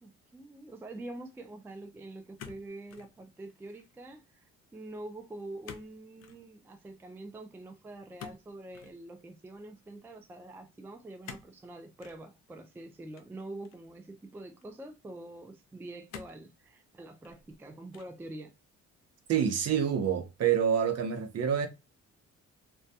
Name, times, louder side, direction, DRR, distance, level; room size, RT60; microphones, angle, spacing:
voice 1, 0.0-18.6, right 2 dB, 10° right, 0.3 m, -45 dB
sound 1, 2.4-3.1 3.5-3.9 5.6-5.9 6.2-6.4 8.2-9.0 11.2-11.6 12.0-12.2 13.1-13.9 14.6-14.7 16.1-16.5 17.1-17.6 17.9-18.3, left 7 dB, 60° left, 0.5 m, -48 dB
voice 2, 19.3-21.7, right 8 dB, 55° right, 0.7 m, -27 dB
2.2 x 2.2 x 2.6 m
cardioid pair, 90°, 30 cm